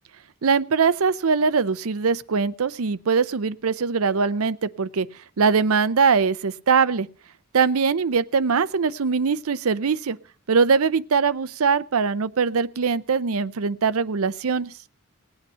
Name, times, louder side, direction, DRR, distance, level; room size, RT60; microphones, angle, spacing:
voice 1, 0.4-5.1 5.4-7.1 7.5-10.2 10.5-14.7, right 5 dB, 75° right, 14 dB, 0.6 m, -22 dB
18.5 x 8.7 x 5.6 m, 0.39 s
head